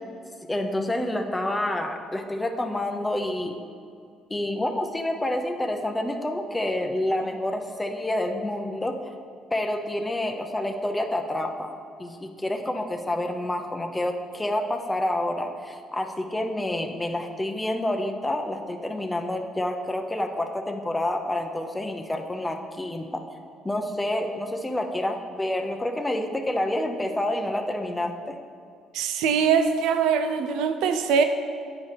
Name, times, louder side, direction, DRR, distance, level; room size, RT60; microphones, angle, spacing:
voice 1, 0.5-3.6 4.3-9.0 9.5-11.7 12.0-23.2 23.6-28.4, left 1 dB, 15° left, 4 dB, 0.6 m, -28 dB
voice 2, 28.9-31.2, right 6 dB, 80° right, 8 dB, 0.5 m, -22 dB
8.4 x 4.9 x 4.1 m, 2.3 s
supercardioid pair, 80°, 0 cm